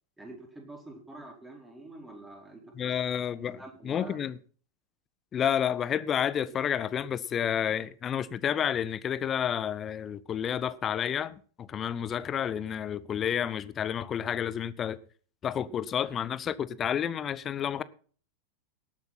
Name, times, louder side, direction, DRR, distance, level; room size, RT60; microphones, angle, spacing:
voice 1, 0.2-2.9 3.6-4.2, right 2 dB, 10° right, 4.6 m, -46 dB
voice 2, 2.7-4.4 5.3-15.0 15.4-17.8, left 9 dB, 25° left, 0.8 m, -30 dB
18.5 x 8.2 x 4.2 m
figure-of-eight pair, 90°, 0 cm